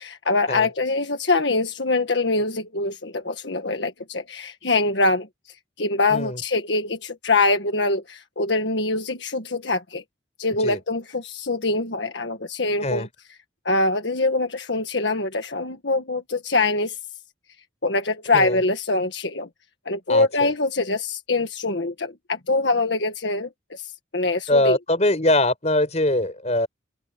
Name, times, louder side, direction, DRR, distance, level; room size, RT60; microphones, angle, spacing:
voice 1, 0.0-5.3 5.8-10.0 10.4-13.1 13.7-17.0 17.8-19.5 19.9-24.8, left 3 dB, 70° left, 1.6 m, -24 dB
voice 2, 6.1-6.4 10.6-10.8 12.8-13.1 18.3-18.6 20.1-20.5 24.5-26.7, left 1 dB, 35° left, 5.1 m, -22 dB
head